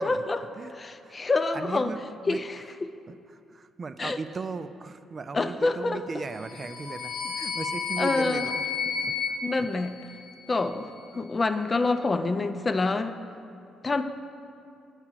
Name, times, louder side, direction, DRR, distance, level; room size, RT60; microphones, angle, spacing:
voice 1, 0.0-0.4 0.7-1.9 2.3-2.6 4.0-4.2 5.3-6.0 8.0-8.5 9.4-9.9 10.5-10.9 11.1-13.2 13.8-14.0, left 3 dB, 30° left, 9 dB, 0.4 m, -26 dB
voice 2, 1.5-2.0 2.3-2.4 3.1-8.7 9.0-9.7 11.1-11.3, right 4 dB, 40° right, 11 dB, 0.3 m, -37 dB
sound 1, 6.3-10.6, left 5 dB, 70° left, 0.8 m, -32 dB
8.7 x 4.8 x 7.3 m, 2.5 s
cardioid pair, 90°, 0 cm